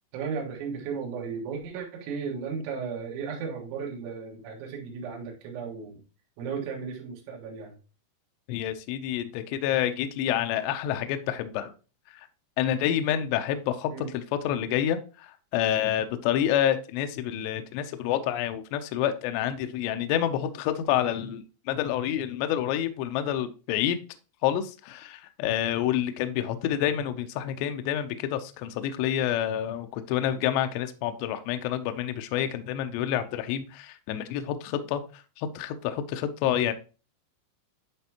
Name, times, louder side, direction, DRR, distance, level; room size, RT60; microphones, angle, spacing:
voice 1, 0.1-6.0 6.4-7.8 13.9-14.1, right 6 dB, 70° right, -1 dB, 3.8 m, -35 dB
voice 2, 8.5-11.7 12.6-15.0 15.5-24.0 24.4-35.0 35.4-36.7, left 11 dB, 85° left, 8 dB, 2.5 m, -28 dB
10.5 x 4.2 x 2.9 m, 0.34 s
omnidirectional pair, 5.8 m